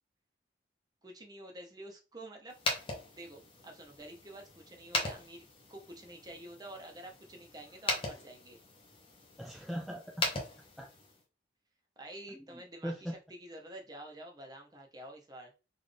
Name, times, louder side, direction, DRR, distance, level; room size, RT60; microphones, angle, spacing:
voice 1, 1.0-2.6 3.2-8.6 12.0-15.5, right 1 dB, 20° right, 1 dB, 0.8 m, -49 dB
sound 1, 2.5-11.2, left 2 dB, 30° left, 0.9 m, -39 dB
voice 2, 9.4-10.4 10.8-10.9 12.3-13.2, equal, ahead, 0 dB, 0.3 m, -41 dB
3.9 x 2.5 x 3.3 m, 0.31 s
head